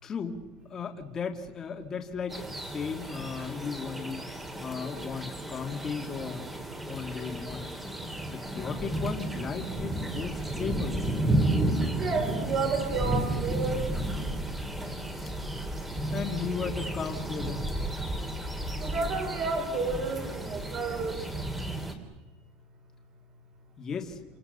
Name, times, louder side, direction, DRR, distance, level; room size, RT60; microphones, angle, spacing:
voice 1, 0.0-4.2 4.6-6.5 6.9-7.7 8.3-11.1 16.1-17.6 23.8-24.2, left 6 dB, 25° left, 4 dB, 2.4 m, -36 dB
sound 1, 2.3-21.9, right 1 dB, 10° right, 3.3 m, -32 dB
voice 2, 11.9-13.9 18.8-21.2, right 4 dB, 35° right, 4 dB, 6.1 m, -31 dB
28.5 x 27.5 x 6.9 m, 1.1 s
cardioid pair, 165°, 2 cm